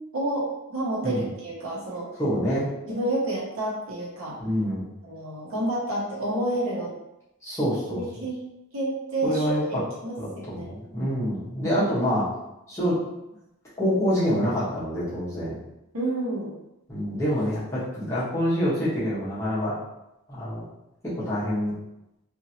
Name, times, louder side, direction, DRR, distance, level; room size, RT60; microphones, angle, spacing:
voice 1, 0.0-2.1 2.9-4.4 5.0-6.9 7.9-8.4 8.7-9.6 10.0-10.7 15.9-16.5, right 1 dB, 75° right, -5 dB, 1.0 m, -29 dB
voice 2, 2.2-2.7 4.4-4.9 7.4-8.0 9.2-9.8 10.2-12.3 12.7-13.0 13.8-15.6 16.9-19.7 20.3-20.7 21.0-21.7, equal, 15° left, -11 dB, 1.0 m, -26 dB
2.9 x 2.6 x 2.8 m, 0.91 s
head